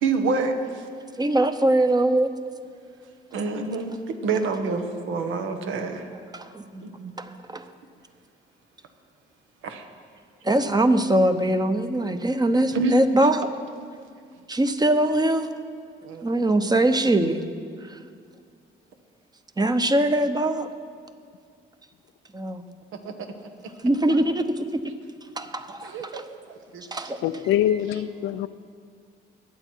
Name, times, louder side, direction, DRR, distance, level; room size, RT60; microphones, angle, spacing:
voice 1, 0.0-0.8 3.3-6.1 6.8-7.1 9.6-9.8 12.7-13.3 16.0-16.4 23.0-23.1 23.4-23.5 24.1-24.2 25.8-26.2 26.7-27.3, right 3 dB, 80° right, 6 dB, 1.4 m, -28 dB
voice 2, 1.2-2.4 6.3-6.9 7.2-7.7 10.4-13.5 14.5-15.5 16.2-17.4 19.6-20.7 22.3-22.6 23.8-24.9 25.4-26.2 26.9-27.2, right 1 dB, 20° right, 9 dB, 0.9 m, -22 dB
voice 3, 27.2-28.5, left 11 dB, 85° left, 13 dB, 0.5 m, -24 dB
22.0 x 8.0 x 4.6 m, 2.1 s
cardioid pair, 90°, 20 cm